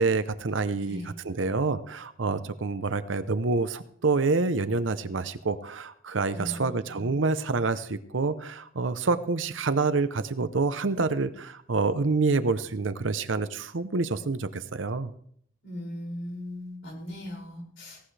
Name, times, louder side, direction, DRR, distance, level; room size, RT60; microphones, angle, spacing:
voice 1, 0.0-15.1, right 3 dB, 70° right, 12 dB, 0.8 m, -27 dB
voice 2, 6.3-7.1 15.6-18.0, left 1 dB, 65° left, -1 dB, 6.2 m, -39 dB
17.0 x 17.0 x 3.4 m, 0.64 s
head